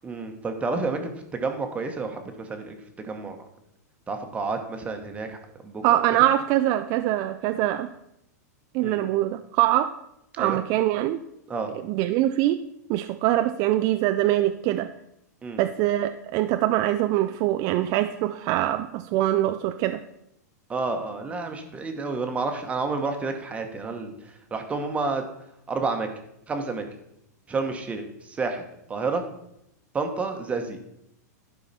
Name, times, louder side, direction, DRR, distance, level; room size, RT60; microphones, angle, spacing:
voice 1, 0.0-2.8 3.0-3.4 4.1-5.4 5.6-6.0 8.8-9.0 10.4-10.6 11.5-11.7 15.4-15.6 20.7-24.1 24.5-25.2 25.7-26.1 26.5-26.8 27.5-28.0 28.4-28.6 28.9-29.2 29.9-30.9, right 4 dB, 15° right, 5 dB, 1.1 m, -29 dB
voice 2, 5.8-7.9 8.7-9.9 10.4-11.2 11.8-12.6 12.9-14.9 15.6-20.0, right 14 dB, 35° right, 8 dB, 0.4 m, -23 dB
11.5 x 5.6 x 4.2 m, 0.79 s
hypercardioid pair, 140°, 9 cm